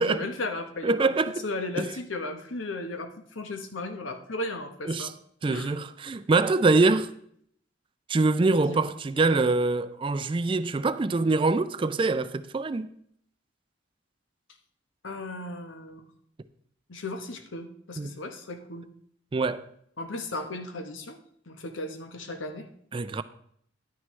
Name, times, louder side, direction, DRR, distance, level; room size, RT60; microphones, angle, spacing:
voice 1, 0.0-1.1 1.4-5.1 5.5-5.7 8.7-8.9 15.0-16.0 16.9-18.9 20.0-21.2 21.5-22.7, left 2 dB, 85° left, 1.1 m, -35 dB
voice 2, 0.8-1.4 1.8-1.9 4.9-5.1 5.4-7.1 8.1-12.9 18.0-18.1 19.3-19.7 22.9-23.2, right 3 dB, 25° right, 0.3 m, -24 dB
10.5 x 9.5 x 3.2 m
head